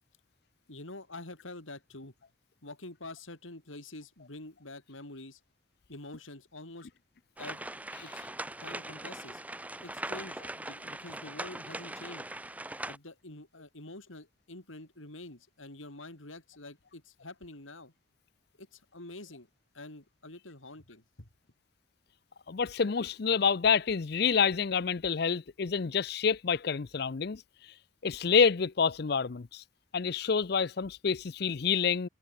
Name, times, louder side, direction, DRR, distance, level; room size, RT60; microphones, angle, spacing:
voice 1, 0.7-2.1 2.6-5.4 5.9-6.9 7.4-7.6 8.0-8.2 8.6-9.4 9.8-12.3 12.9-17.9 18.6-19.5 19.7-21.3, left 2 dB, 80° left, 4.4 m, -46 dB
sound 1, 7.4-13.0, right 1 dB, 5° right, 1.0 m, -40 dB
voice 2, 22.5-27.7 28.0-29.6 29.9-32.1, left 6 dB, 55° left, 0.5 m, -28 dB
head